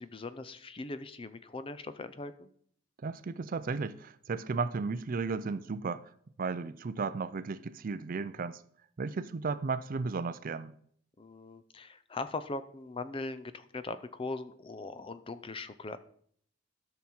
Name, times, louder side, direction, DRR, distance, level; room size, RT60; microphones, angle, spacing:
voice 1, 0.0-2.5 11.2-16.0, left 3 dB, 25° left, 0.5 m, -40 dB
voice 2, 3.0-6.0 6.4-8.6 9.0-10.7, right 4 dB, 40° right, 0.4 m, -34 dB
12.5 x 6.2 x 4.3 m
head